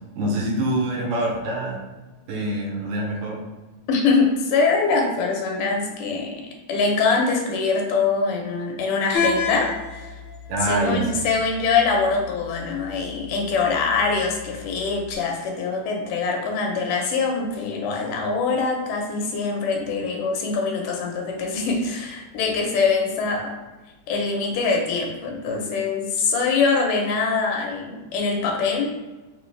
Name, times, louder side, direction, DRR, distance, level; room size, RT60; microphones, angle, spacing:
voice 1, 0.2-1.8 2.3-3.4 10.5-11.1, right 1 dB, 80° right, -1 dB, 2.3 m, -25 dB
voice 2, 3.9-6.3 6.7-10.2 10.6-23.5 24.1-28.9, left 4 dB, 80° left, 1 dB, 2.3 m, -23 dB
sound 1, 9.1-15.1, left 4 dB, 65° left, 1.1 m, -32 dB
5.5 x 2.8 x 3.2 m, 1.1 s
omnidirectional pair, 3.6 m